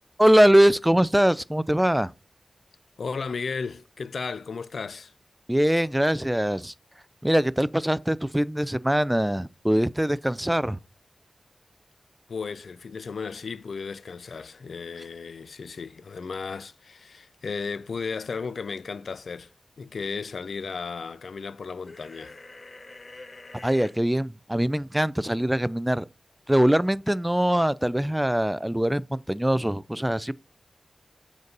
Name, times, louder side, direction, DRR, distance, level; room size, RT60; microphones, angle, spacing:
voice 1, 0.2-2.1 5.5-6.7 7.2-10.8 23.6-26.0 26.5-30.3, right 1 dB, 10° right, 0.4 m, -22 dB
voice 2, 3.0-5.1 12.3-19.5 19.8-22.4, left 5 dB, 85° left, 0.4 m, -34 dB
sound 1, 21.8-23.9, left 2 dB, 45° left, 1.4 m, -45 dB
7.9 x 4.0 x 5.3 m
wide cardioid pair, 75°, 0 cm